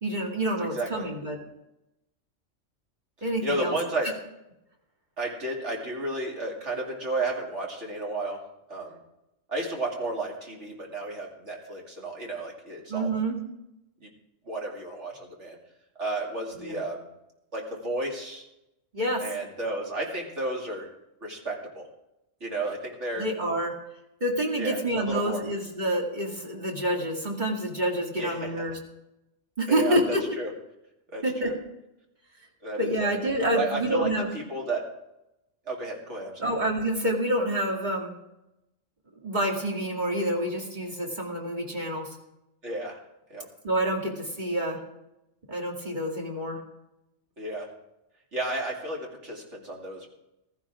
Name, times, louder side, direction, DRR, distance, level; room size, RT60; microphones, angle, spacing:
voice 1, 0.0-1.4 3.2-3.8 12.9-13.4 16.6-16.8 18.9-19.2 23.2-23.7 24.2-28.8 29.6-30.4 31.2-31.5 32.8-34.3 36.4-38.1 39.2-42.1 43.6-44.8 45.5-46.6, right 1 dB, 35° right, -1 dB, 2.6 m, -28 dB
voice 2, 0.6-1.1 3.4-4.1 5.2-8.4 8.7-9.0 9.5-13.1 14.0-14.1 14.5-15.6 16.0-17.1 17.5-18.4 19.2-20.9 21.2-21.9 22.4-23.3 24.6-25.4 28.2-28.5 29.7-30.5 31.1-31.5 32.6-33.1 33.5-34.9 35.7-36.5 42.6-43.0 43.3-43.5 47.4-47.7 48.3-50.1, right 2 dB, 65° right, -1 dB, 2.9 m, -32 dB
15.5 x 14.0 x 3.7 m, 0.90 s
omnidirectional pair, 1.3 m